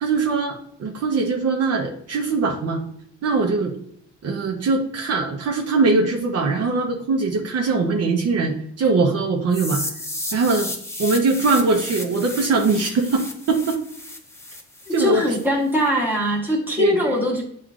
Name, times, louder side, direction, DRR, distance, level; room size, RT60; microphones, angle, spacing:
voice 1, 0.0-2.8 3.2-3.7 4.2-9.8 10.3-10.7 11.0-13.8 14.9-15.4 16.8-17.1, right 3 dB, 55° right, 2 dB, 0.7 m, -21 dB
sound 1, 9.5-15.5, left 1 dB, 10° left, 0.7 m, -33 dB
voice 2, 14.9-17.4, left 1 dB, 5° right, -2 dB, 1.2 m, -22 dB
7.1 x 2.4 x 2.4 m, 0.67 s
cardioid pair, 90°, 30 cm